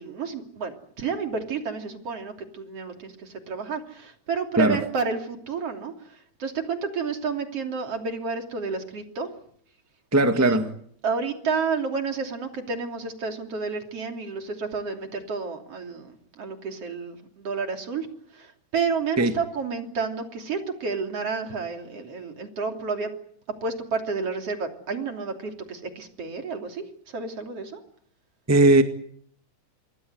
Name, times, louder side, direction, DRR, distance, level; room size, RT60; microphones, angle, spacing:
voice 1, 0.0-9.3 10.3-10.6 11.0-18.1 18.3-23.1 23.6-27.8, right 5 dB, 55° right, 4.0 m, -30 dB
voice 2, 10.1-10.7 19.2-19.3 28.5-28.8, right 2 dB, 10° right, 1.2 m, -18 dB
27.0 x 22.5 x 8.0 m
omnidirectional pair, 3.4 m